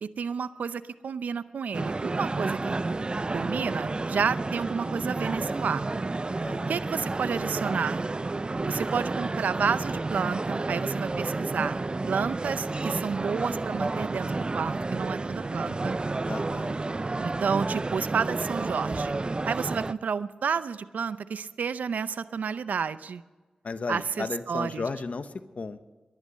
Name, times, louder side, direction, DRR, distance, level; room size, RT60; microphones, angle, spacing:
voice 1, 0.0-2.8 3.3-5.8 6.7-8.1 8.7-11.8 12.1-16.0 17.2-19.1 19.5-23.2 23.9-24.8, right 6 dB, 85° right, 14 dB, 0.6 m, -30 dB
sound 1, 1.7-19.9, right 3 dB, 40° right, 0.5 m, -30 dB
voice 2, 6.4-6.8 16.3-16.8 23.6-25.9, left 4 dB, 65° left, 11 dB, 1.0 m, -34 dB
19.0 x 11.5 x 5.6 m, 1.3 s
cardioid pair, 45°, 3 cm